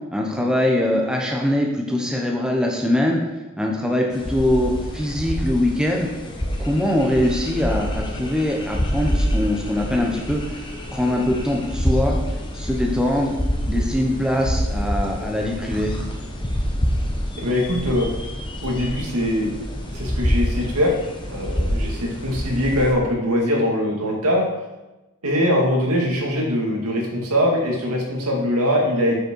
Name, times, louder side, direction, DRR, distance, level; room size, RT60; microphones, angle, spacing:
voice 1, 0.1-3.2 3.6-6.1 6.6-10.6 10.9-12.2 12.5-13.4 13.7-15.9, left 1 dB, 5° right, 0 dB, 1.0 m, -22 dB
sound 1, 4.1-22.9, equal, 20° left, 1.1 m, -27 dB
voice 2, 17.4-18.1 18.6-19.5 19.9-20.9 21.3-24.4 25.2-29.3, equal, 90° right, -1 dB, 2.4 m, -22 dB
7.8 x 7.5 x 4.7 m, 1.0 s
head